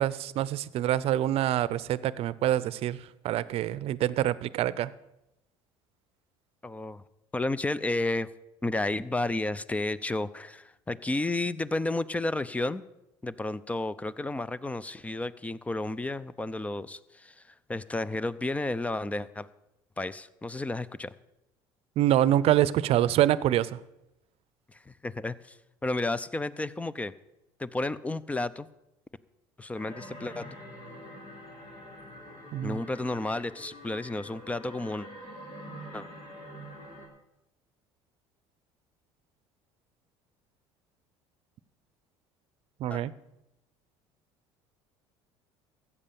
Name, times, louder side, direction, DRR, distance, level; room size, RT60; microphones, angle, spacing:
voice 1, 0.0-3.0 3.2-4.9 22.0-23.8 32.5-32.8 42.8-43.1, right 12 dB, 60° right, 18 dB, 0.7 m, -25 dB
voice 2, 6.6-7.0 7.3-8.3 8.6-12.8 13.2-19.5 20.0-21.1 24.7-27.1 27.6-28.7 29.6-30.6 32.6-35.1 35.9-36.1 42.9-43.0, left 2 dB, 10° left, 18 dB, 0.6 m, -32 dB
sound 1, 29.7-37.1, equal, 60° left, 3.9 m, -45 dB
14.0 x 8.5 x 7.0 m, 0.92 s
supercardioid pair, 85°, 12 cm